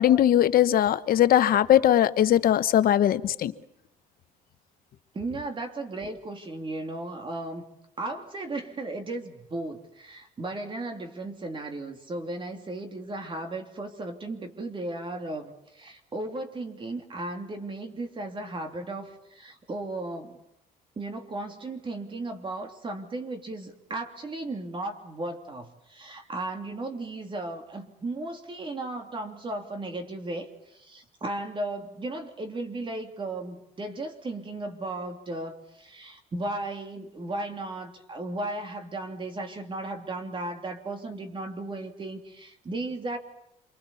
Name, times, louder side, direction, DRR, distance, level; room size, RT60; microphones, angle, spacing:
voice 1, 0.0-3.5, left 11 dB, 60° left, 13 dB, 1.1 m, -20 dB
voice 2, 5.1-7.6 8.0-20.4 21.0-43.2, right 2 dB, 30° right, 5 dB, 3.1 m, -35 dB
28.0 x 24.0 x 7.1 m, 0.82 s
cardioid pair, 110°, 17 cm